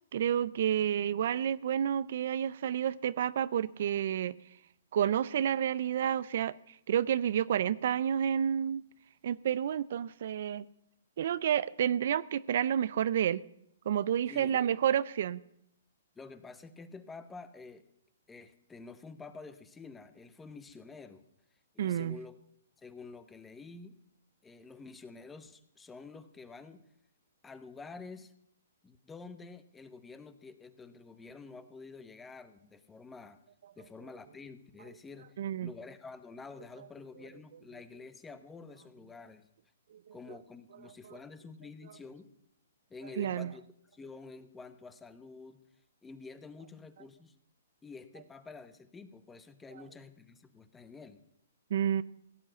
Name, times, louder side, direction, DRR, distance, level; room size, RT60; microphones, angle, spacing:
voice 1, 0.1-4.3 4.9-6.5 6.9-8.8 9.2-10.6 11.2-13.4 13.9-15.4 21.8-22.2 35.4-35.7 40.1-40.2 43.2-43.5 51.7-52.0, right 9 dB, 60° right, 0.4 m, -30 dB
voice 2, 16.1-17.8 18.3-21.2 21.7-22.4 22.8-24.0 24.4-26.8 27.4-28.3 28.8-33.4 33.8-39.5 40.1-42.3 42.9-43.6 43.9-45.7 46.0-47.3 47.8-51.2, left 4 dB, 10° left, 0.9 m, -49 dB
16.5 x 8.1 x 7.7 m
hypercardioid pair, 150°, 0 cm